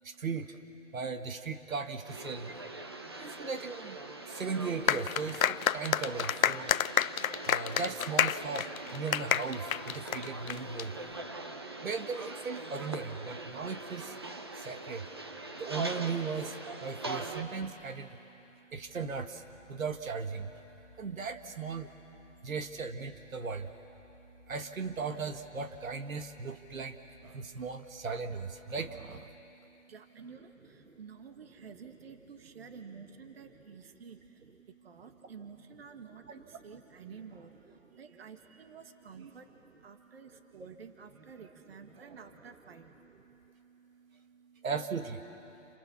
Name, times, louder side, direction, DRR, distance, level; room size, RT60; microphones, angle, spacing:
voice 1, 0.9-2.5 3.2-4.0 4.3-6.7 7.5-8.6 8.9-10.9 11.8-14.1 14.6-15.0 15.6-16.5 16.8-18.1 18.7-19.4 19.7-20.5 21.0-21.9 22.4-23.7 24.5-26.9 27.3-29.2 44.6-45.2, right 5 dB, 80° right, 7 dB, 1.7 m, -37 dB
sound 1, 2.0-17.4, right 2 dB, 20° right, 0.6 m, -42 dB
sound 2, 4.9-10.8, left 9 dB, 85° left, 0.7 m, -29 dB
sound 3, 18.7-29.1, left 1 dB, 5° left, 1.2 m, -60 dB
voice 2, 29.9-43.1, right 6 dB, 45° right, 6 dB, 1.8 m, -51 dB
29.5 x 28.5 x 7.1 m, 3.0 s
hypercardioid pair, 165°, 40 cm